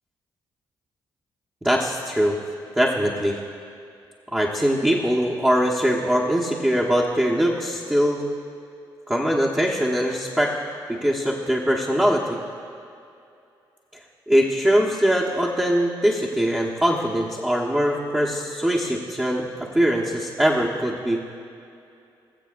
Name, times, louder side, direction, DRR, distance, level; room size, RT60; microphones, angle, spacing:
voice 1, 1.6-2.4 2.8-3.4 4.3-8.2 9.1-10.5 10.9-12.4 14.3-21.2, equal, 10° right, -5 dB, 1.3 m, -22 dB
22.0 x 7.5 x 2.6 m, 2.5 s
hypercardioid pair, 45°, 10 cm